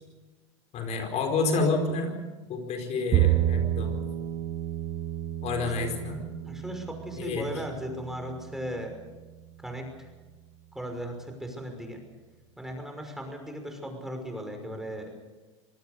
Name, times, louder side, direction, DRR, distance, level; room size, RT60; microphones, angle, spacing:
voice 1, 0.7-2.1 2.5-4.0 5.4-6.2 7.2-7.5, left 3 dB, 50° left, 4 dB, 4.6 m, -29 dB
Bowed string instrument, 3.1-9.4, right 12 dB, 50° right, 1.8 m, -30 dB
voice 2, 6.4-8.9 9.6-9.9 10.7-12.0 12.6-15.1, equal, 5° right, 4 dB, 5.7 m, -37 dB
25.5 x 19.0 x 6.8 m, 1.2 s
supercardioid pair, 105°, 15 cm